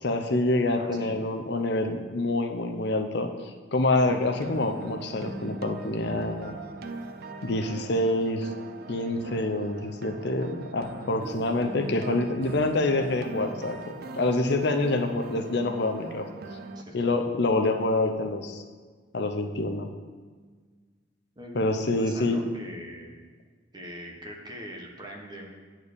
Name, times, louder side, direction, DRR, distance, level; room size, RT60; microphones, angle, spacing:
voice 1, 0.0-3.3 3.7-6.6 7.4-8.5 8.9-16.3 16.9-18.6 19.1-19.9 21.5-22.4, left 2 dB, 60° left, 6 dB, 0.7 m, -26 dB
voice 2, 0.8-1.2 10.9-11.2 16.7-16.9 21.4-21.6 22.0-23.1 23.7-25.6, equal, 25° right, 0 dB, 1.1 m, -42 dB
sound 1, 4.0-16.8, right 3 dB, 55° right, 0.5 m, -40 dB
8.6 x 4.6 x 6.6 m, 1.5 s
head